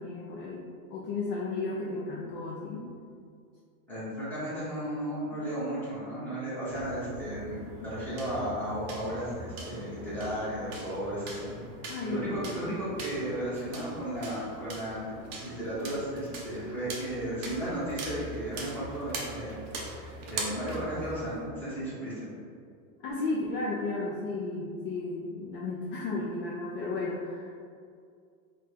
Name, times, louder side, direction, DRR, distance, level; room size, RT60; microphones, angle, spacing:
voice 1, 0.0-2.9 11.9-12.3 23.0-27.7, left 3 dB, 40° left, -4 dB, 0.5 m, -34 dB
voice 2, 3.9-11.5 11.8-15.2 15.4-22.3, right 1 dB, 5° left, -11 dB, 1.3 m, -34 dB
sound 1, 6.7-21.5, right 2 dB, 35° right, 0.6 m, -42 dB
3.7 x 2.5 x 4.4 m, 2.2 s
supercardioid pair, 150°, 44 cm